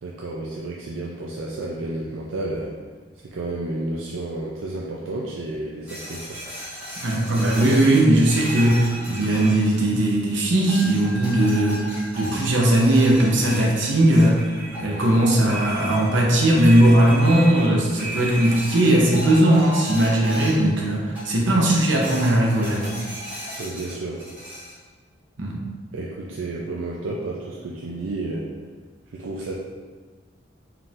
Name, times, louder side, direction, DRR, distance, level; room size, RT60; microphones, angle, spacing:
voice 1, 0.0-2.7 3.2-6.4 23.6-24.2 25.9-28.4 29.1-29.5, right 2 dB, 90° right, -3 dB, 0.5 m, -31 dB
sound 1, 5.9-10.2 10.7-20.7 21.1-21.7 22.0-24.8, right 1 dB, 10° right, 1.4 m, -35 dB
voice 2, 7.0-11.8 12.2-14.4 14.8-22.9 25.4-25.6, right 1 dB, 75° right, -2 dB, 0.8 m, -18 dB
4.4 x 3.8 x 2.5 m, 1.5 s
head